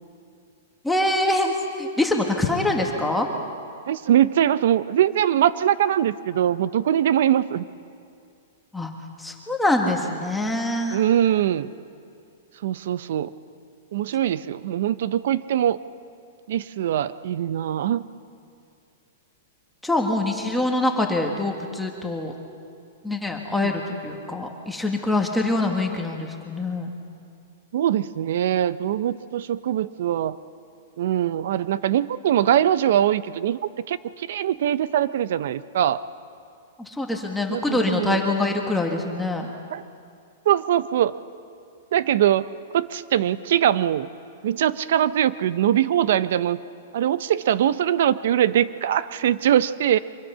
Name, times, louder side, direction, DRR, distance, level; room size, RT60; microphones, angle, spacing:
voice 1, 0.8-1.5 1.8-3.3 8.7-8.9 9.2-11.0 19.8-22.3 23.0-27.0 36.9-39.5, left 2 dB, 5° left, 1 dB, 1.6 m, -24 dB
voice 2, 3.9-7.6 10.9-11.7 12.6-13.3 13.9-15.8 16.5-18.0 23.6-23.7 27.7-30.4 31.0-36.0 37.5-38.2 39.7-39.8 40.5-41.1 41.9-42.5 42.7-44.1 44.4-46.6 46.9-50.0, right 11 dB, 65° right, 16 dB, 0.7 m, -22 dB
24.5 x 21.5 x 5.7 m, 2.4 s
hypercardioid pair, 155°, 0 cm